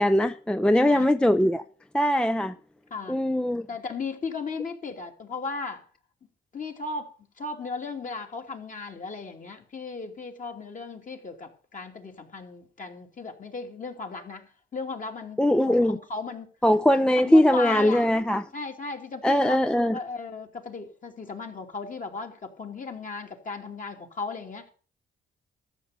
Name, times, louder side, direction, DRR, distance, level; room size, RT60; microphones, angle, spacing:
voice 1, 0.0-1.6 1.9-2.5 3.1-3.7 15.4-16.0 16.6-18.4 19.2-20.0, left 1 dB, 5° left, 0.6 m, -21 dB
voice 2, 0.7-1.1 2.9-3.2 3.7-5.8 6.5-7.1 7.4-15.4 15.7-16.5 17.1-18.1 18.5-19.6 19.8-24.6, left 4 dB, 40° left, 2.8 m, -36 dB
13.5 x 6.6 x 8.2 m
cardioid pair, 90°, 20 cm